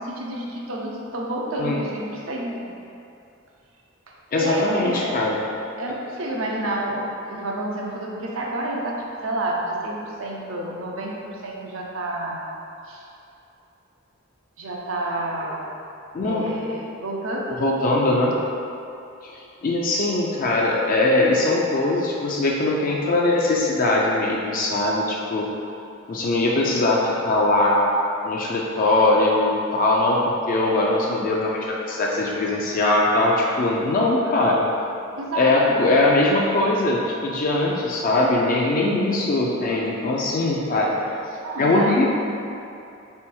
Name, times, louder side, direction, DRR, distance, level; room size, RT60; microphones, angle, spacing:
voice 1, 0.0-2.7 4.4-5.2 5.8-12.4 12.8-13.0 14.6-15.7 16.2-17.6 35.2-35.9 41.4-42.0, right 1 dB, 75° right, -2 dB, 0.6 m, -29 dB
voice 2, 4.3-5.4 16.1-16.4 17.6-18.4 19.6-25.5 26.1-27.9 28.2-34.7 35.4-40.9 41.6-42.0, left 2 dB, 40° left, -3 dB, 0.4 m, -21 dB
3.4 x 3.0 x 4.4 m, 2.7 s
head